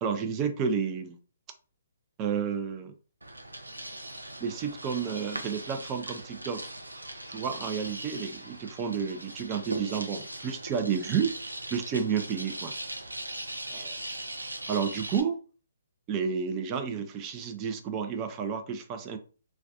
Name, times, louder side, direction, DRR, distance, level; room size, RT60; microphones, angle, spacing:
voice 1, 0.0-1.2 2.2-2.9 4.4-6.6 7.3-11.3 11.7-12.7 13.7-13.9 14.7-15.4 16.1-19.2, right 6 dB, 25° right, 6 dB, 0.4 m, -31 dB
sound 1, 3.2-15.2, right 1 dB, 90° right, 0.4 m, -39 dB
2.4 x 2.2 x 2.4 m, 0.38 s
figure-of-eight pair, 135°, 0 cm